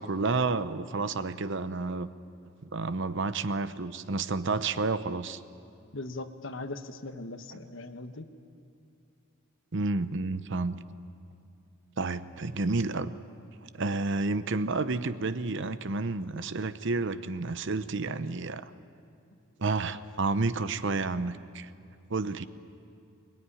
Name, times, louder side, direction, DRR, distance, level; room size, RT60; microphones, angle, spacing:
voice 1, 0.0-2.1 2.6-5.4 7.5-7.6 9.7-10.8 12.0-13.1 13.7-18.7 19.6-21.7 22.1-22.5, right 3 dB, 60° right, 13 dB, 0.8 m, -30 dB
voice 2, 5.9-8.3, left 2 dB, 60° left, 8 dB, 1.2 m, -39 dB
22.0 x 22.0 x 9.9 m, 2.5 s
head